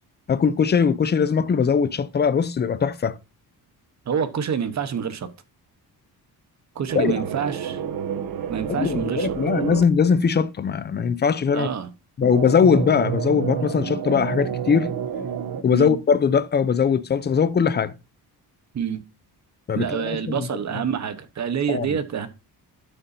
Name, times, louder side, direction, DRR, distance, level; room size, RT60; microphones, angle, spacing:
voice 1, 0.3-3.2 6.9-7.2 8.7-11.7 12.2-14.9 15.6-17.9 19.7-20.5 21.7-22.0, left 6 dB, 25° left, 0.4 m, -21 dB
voice 2, 4.1-5.3 6.7-7.8 8.5-9.3 11.5-11.9 15.7-16.0 18.7-19.0 19.7-22.3, right 7 dB, 45° right, 1.0 m, -27 dB
sound 1, 6.9-9.8 12.2-15.6, right 8 dB, 60° right, 1.0 m, -29 dB
11.0 x 6.9 x 2.6 m
wide cardioid pair, 170°, 40 cm